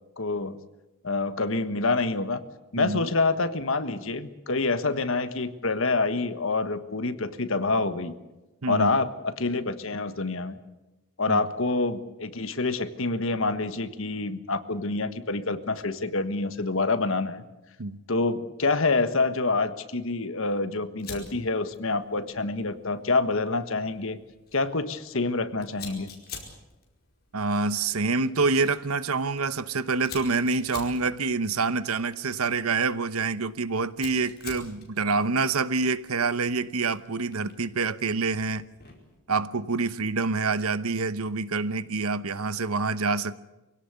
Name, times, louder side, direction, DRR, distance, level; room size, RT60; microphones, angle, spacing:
voice 1, 0.2-0.6 1.0-2.4 2.7-8.1 8.7-10.6 11.2-17.4 18.1-24.2 24.5-26.1, left 3 dB, 65° left, 1.4 m, -27 dB
voice 2, 2.8-3.1 8.6-9.0 11.3-11.4 17.8-18.0 27.3-38.7 39.3-43.3, right 4 dB, 85° right, 1.0 m, -27 dB
Fire, 21.0-39.2, left 5 dB, 45° left, 4.9 m, -49 dB
24.5 x 17.5 x 8.2 m
head